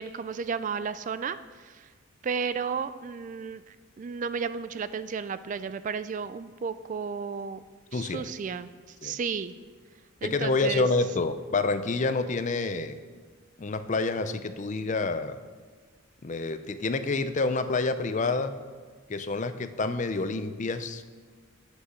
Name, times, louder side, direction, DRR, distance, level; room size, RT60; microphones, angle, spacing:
voice 1, 0.0-1.9 2.2-7.6 7.9-9.6 10.2-10.9, right 6 dB, 35° right, 14 dB, 0.3 m, -33 dB
voice 2, 7.9-8.3 9.0-9.1 10.2-13.0 13.6-15.4 16.2-18.5 19.1-21.0, left 3 dB, 35° left, 11 dB, 0.5 m, -28 dB
8.3 x 8.2 x 6.4 m, 1.5 s
head